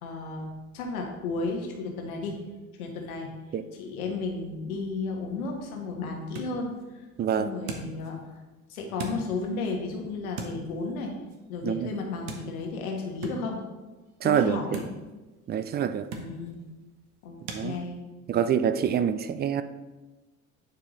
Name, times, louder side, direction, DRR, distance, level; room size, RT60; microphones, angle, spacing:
voice 1, 0.0-2.4 2.8-3.3 3.7-7.1 7.3-8.2 8.7-11.1 11.5-13.6 14.2-14.8 16.1-16.6 17.2-18.0, left 3 dB, 75° left, 2 dB, 1.3 m, -33 dB
sound 1, 5.2-17.7, right 4 dB, 60° right, 1.1 m, -44 dB
voice 2, 7.2-7.5 11.6-11.9 14.2-14.8 15.5-16.1 17.5-17.8 18.3-19.6, right 8 dB, 25° right, 12 dB, 0.3 m, -26 dB
9.0 x 4.8 x 3.0 m, 1.1 s
figure-of-eight pair, 55°, 44 cm